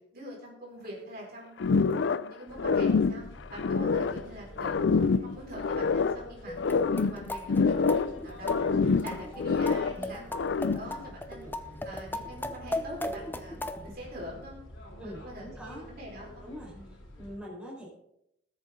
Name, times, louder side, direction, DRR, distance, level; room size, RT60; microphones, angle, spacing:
voice 1, 0.1-1.5 1.8-3.2 3.5-6.5 6.9-10.2 10.6-11.5 11.8-13.6 13.8-14.6 14.8-16.5 16.7-16.9, equal, 50° right, -2 dB, 4.6 m, -44 dB
sound 1, 1.6-2.3 2.6-4.2 4.6-6.2 6.6-8.2 8.4-10.0 10.3-11.0, left 4 dB, 65° left, 0.4 m, -26 dB
sound 2, 2.5-17.4, left 1 dB, 80° left, 3.5 m, -48 dB
sound 3, 6.5-13.9, left 1 dB, 10° left, 0.8 m, -37 dB
voice 2, 15.0-15.8 16.4-17.9, equal, 5° right, -5 dB, 4.4 m, -44 dB
20.0 x 8.7 x 3.8 m, 0.80 s
head